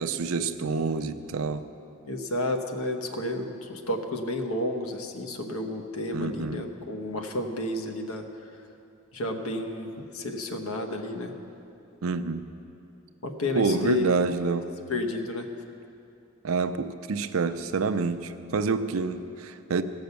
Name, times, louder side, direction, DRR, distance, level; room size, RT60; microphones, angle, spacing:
voice 1, 0.0-1.7 6.1-6.6 12.0-12.4 13.5-14.7 16.4-19.8, right 4 dB, 75° right, 10 dB, 0.5 m, -27 dB
voice 2, 2.0-8.2 9.1-11.3 13.2-14.0 14.9-15.5, left 1 dB, 90° left, 5 dB, 1.1 m, -31 dB
16.0 x 6.3 x 7.0 m, 2.7 s
head